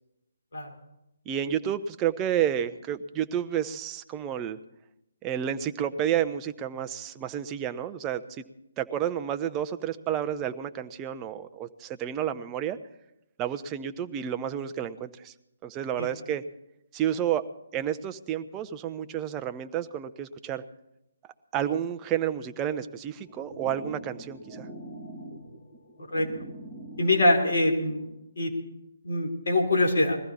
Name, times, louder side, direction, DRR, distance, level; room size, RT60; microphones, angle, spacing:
voice 1, 1.3-4.6 5.2-8.4 8.8-12.8 13.4-15.3 15.6-16.4 16.9-17.4 17.7-20.6 21.5-24.7, right 10 dB, 20° right, 9 dB, 0.7 m, -30 dB
sound 1, 23.1-28.1, right 1 dB, 20° left, 5.0 m, -44 dB
voice 2, 27.0-28.1 28.4-28.5 29.0-30.2, left 2 dB, 65° left, 1 dB, 3.4 m, -23 dB
21.0 x 14.5 x 4.2 m, 0.89 s
figure-of-eight pair, 140°, 0 cm